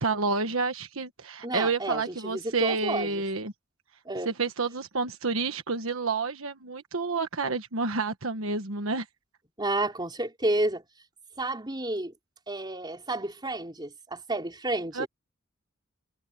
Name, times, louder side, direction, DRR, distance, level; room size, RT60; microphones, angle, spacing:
voice 1, 0.0-3.5 4.2-9.0 14.9-15.1, right 4 dB, 75° right, 1.4 m, -29 dB
voice 2, 1.4-3.2 4.0-4.3 9.6-10.8 11.4-12.1 12.5-15.1, right 2 dB, 20° right, 4.3 m, -31 dB
head